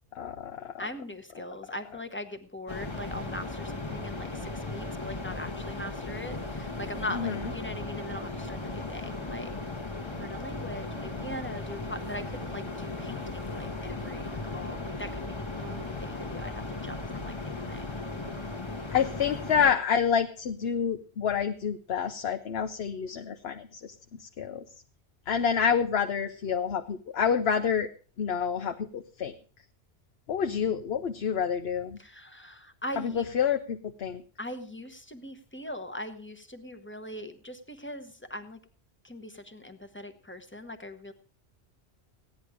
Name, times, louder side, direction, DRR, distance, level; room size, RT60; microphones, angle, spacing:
voice 1, 0.1-0.7 1.4-1.5 7.1-7.5 18.9-24.6 25.3-27.9 28.2-29.3 30.3-32.0 33.0-34.2, left 7 dB, 70° left, 5 dB, 1.0 m, -28 dB
voice 2, 0.8-9.5 10.2-18.0 30.5-30.7 32.0-33.2 34.4-38.6 39.0-41.1, left 1 dB, 10° left, 8 dB, 1.1 m, -41 dB
sound 1, 2.7-19.7, left 2 dB, 25° left, 1.3 m, -36 dB
15.5 x 10.5 x 4.9 m, 0.40 s
omnidirectional pair, 1.1 m